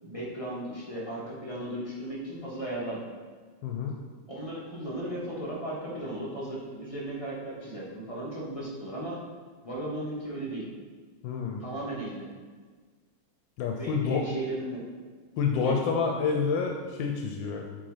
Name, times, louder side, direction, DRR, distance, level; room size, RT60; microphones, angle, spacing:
voice 1, 0.0-3.1 4.3-9.2 9.6-10.7 11.6-12.3 13.8-14.8 15.6-15.8, right 1 dB, 20° left, -6 dB, 1.5 m, -36 dB
voice 2, 3.6-3.9 11.2-11.6 13.6-14.2 15.4-17.7, left 5 dB, 85° left, 2 dB, 1.4 m, -28 dB
7.8 x 4.1 x 5.0 m, 1.5 s
omnidirectional pair, 2.0 m